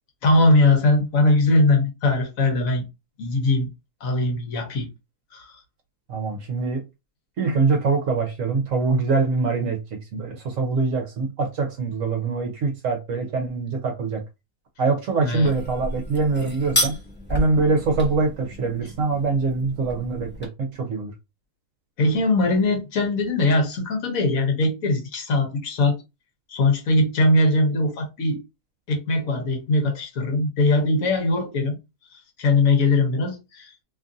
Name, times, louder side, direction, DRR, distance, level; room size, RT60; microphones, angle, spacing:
voice 1, 0.2-2.8 3.2-3.7 4.0-4.9 5.3-5.6 15.2-15.5 22.0-26.0 26.5-28.4 28.9-31.8 32.4-33.7, left 2 dB, 65° left, 1.2 m, -21 dB
voice 2, 6.1-6.8 7.4-14.2 14.8-17.0 17.3-21.1, right 4 dB, 60° right, 1.0 m, -24 dB
sound 1, 15.4-20.5, left 1 dB, 10° left, 0.5 m, -31 dB
2.9 x 2.5 x 2.5 m
omnidirectional pair, 1.7 m